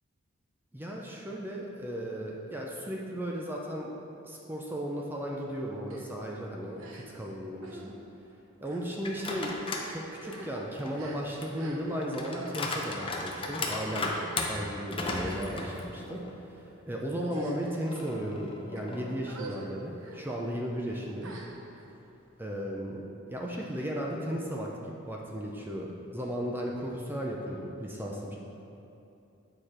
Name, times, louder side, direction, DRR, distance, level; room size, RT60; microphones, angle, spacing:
voice 1, 0.7-4.0 4.3-7.9 8.6-14.1 14.5-16.2 16.5-21.3 22.4-23.0 23.3-28.3, equal, 10° right, -2 dB, 0.5 m, -35 dB
sound 1, 5.9-6.1 6.8-7.3 7.6-7.9 8.6-8.9 9.6-9.7 10.1-12.0 12.3-12.6 13.4-13.7 14.1-14.5 15.0-15.8 16.5-16.8 17.2-17.9 18.5-18.8 19.2-19.7 20.0-20.2 21.2-21.9, right 2 dB, 70° right, 0.9 m, -46 dB
sound 2, 9.0-9.9 10.3-16.4 16.8-16.9 17.9-19.3, left 2 dB, 25° left, 0.7 m, -36 dB
8.7 x 4.9 x 4.3 m, 2.7 s
head